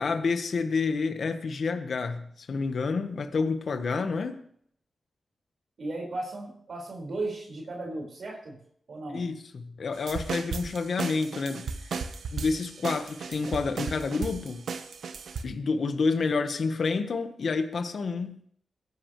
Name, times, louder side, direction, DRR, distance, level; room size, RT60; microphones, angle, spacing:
voice 1, 0.0-4.4 9.1-12.0 12.3-14.6 15.4-18.4, left 4 dB, 70° left, 1.4 m, -29 dB
voice 2, 5.8-8.6 8.9-9.2, right 2 dB, 65° right, 5.1 m, -35 dB
sound 1, 10.0-15.4, right 5 dB, 90° right, 1.1 m, -35 dB
23.0 x 11.0 x 3.2 m
wide cardioid pair, 90°, 0 cm